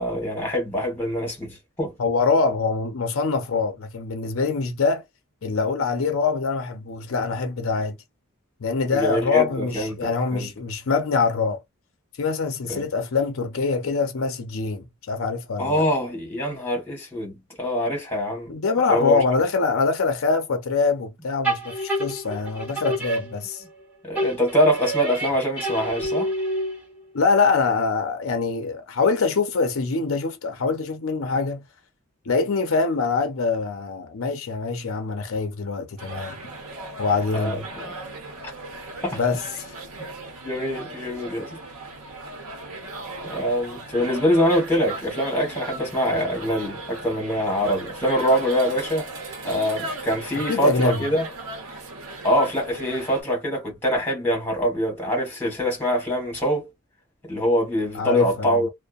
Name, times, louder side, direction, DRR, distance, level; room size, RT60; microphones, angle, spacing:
voice 1, 0.0-1.9 8.9-10.5 12.7-12.9 15.6-18.6 18.9-19.2 24.0-26.3 37.3-37.9 39.0-39.2 40.4-41.6 43.2-49.1 49.4-51.3 52.2-56.7 57.2-58.7, equal, 10° left, 1.2 m, -24 dB
voice 2, 2.0-5.0 5.4-8.0 8.6-11.6 12.2-15.8 18.5-23.6 27.1-31.7 32.3-36.4 37.0-37.6 39.1-39.7 50.5-51.0 57.9-58.7, left 4 dB, 70° left, 0.6 m, -24 dB
sound 1, 21.4-23.8 24.1-27.0, right 1 dB, 5° right, 0.9 m, -28 dB
sound 2, 36.0-53.2, right 2 dB, 90° right, 0.8 m, -37 dB
2.6 x 2.1 x 2.3 m
head